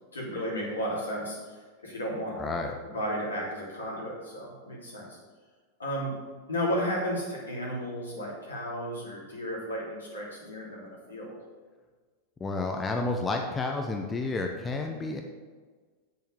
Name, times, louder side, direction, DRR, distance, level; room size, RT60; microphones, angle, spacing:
voice 1, 0.1-2.4 2.9-5.2 5.8-6.1 6.5-11.3, equal, 75° left, -4 dB, 3.7 m, -33 dB
voice 2, 2.4-2.7 12.4-15.2, left 3 dB, 15° left, 3 dB, 0.9 m, -30 dB
8.3 x 7.2 x 6.8 m, 1.5 s
figure-of-eight pair, 90°, 0 cm